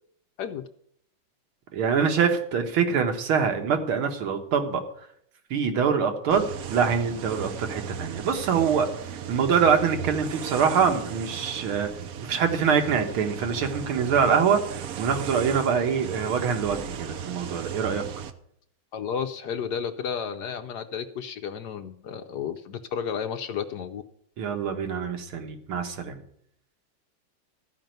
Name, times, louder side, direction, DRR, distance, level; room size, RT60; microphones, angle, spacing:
voice 1, 1.7-4.8 5.5-6.4 6.7-8.9 9.3-11.9 12.2-18.0 24.4-26.2, right 6 dB, 85° right, 6 dB, 2.2 m, -24 dB
sound 1, 6.3-18.3, right 8 dB, 65° right, 0.9 m, -36 dB
voice 2, 18.9-24.0, left 7 dB, 70° left, 8 dB, 1.0 m, -32 dB
13.5 x 5.3 x 9.1 m, 0.69 s
omnidirectional pair, 2.2 m